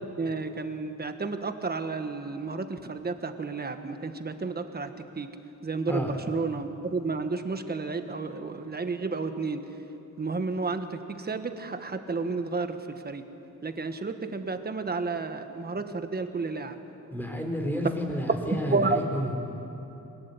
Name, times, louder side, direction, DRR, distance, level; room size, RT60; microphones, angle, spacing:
voice 1, 0.2-4.9 5.2-5.3 5.6-9.6 10.2-10.9 11.3-12.8 13.0-13.2 13.6-16.7 18.7-19.0, right 4 dB, 30° right, 8 dB, 1.4 m, -31 dB
voice 2, 5.9-6.2 17.1-19.4, equal, 5° left, 2 dB, 3.6 m, -30 dB
23.0 x 20.5 x 8.4 m, 2.9 s
wide cardioid pair, 125°, 32 cm